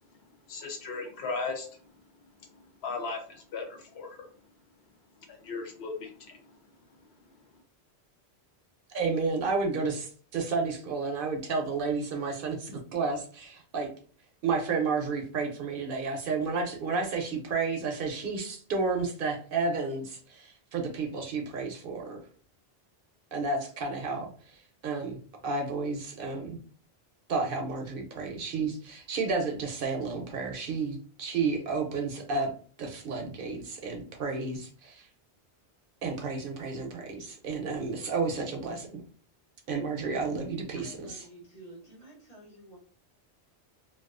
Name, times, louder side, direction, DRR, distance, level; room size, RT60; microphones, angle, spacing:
voice 1, 0.5-1.7 2.8-4.2 5.3-6.4, left 4 dB, 80° left, 3 dB, 0.9 m, -36 dB
voice 2, 8.9-13.9 14.4-22.2 23.3-24.6 24.8-25.2 25.4-26.6 27.3-32.5 32.8-35.1 36.0-39.0 39.7-41.3, right 4 dB, 65° right, 2 dB, 0.7 m, -31 dB
voice 3, 40.7-42.8, right 1 dB, 40° left, -4 dB, 1.0 m, -50 dB
2.3 x 2.3 x 2.4 m, 0.42 s
omnidirectional pair, 1.1 m